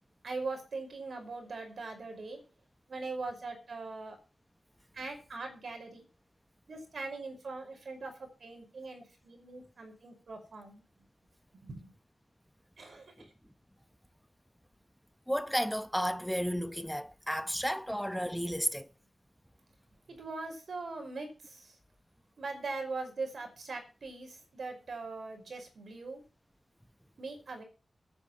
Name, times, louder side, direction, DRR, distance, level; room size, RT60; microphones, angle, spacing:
voice 1, 0.2-2.4 2.9-4.2 4.9-6.0 6.7-11.1 11.5-11.9 12.8-13.3 20.1-21.8 22.4-26.2 27.2-27.6, right 3 dB, 75° right, 5.3 m, -41 dB
voice 2, 15.3-18.9, equal, ahead, 1.1 m, -33 dB
22.5 x 9.6 x 3.1 m
wide cardioid pair, 115°, 0 cm